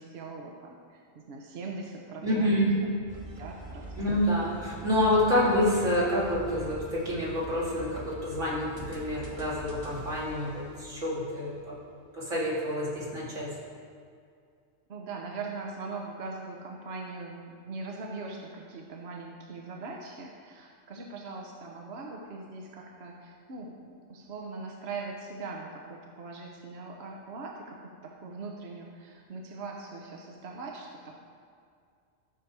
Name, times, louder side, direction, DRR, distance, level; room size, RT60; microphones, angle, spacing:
voice 1, 0.0-2.6 3.3-4.2 14.9-31.1, right 3 dB, 60° right, 0 dB, 1.1 m, -41 dB
voice 2, 2.2-2.9 4.0-11.8 12.1-13.5, left 1 dB, 90° right, -7 dB, 2.9 m, -28 dB
sound 1, 3.1-11.5, right 2 dB, 30° right, 1.1 m, -44 dB
12.5 x 6.7 x 4.7 m, 2.3 s
omnidirectional pair, 1.2 m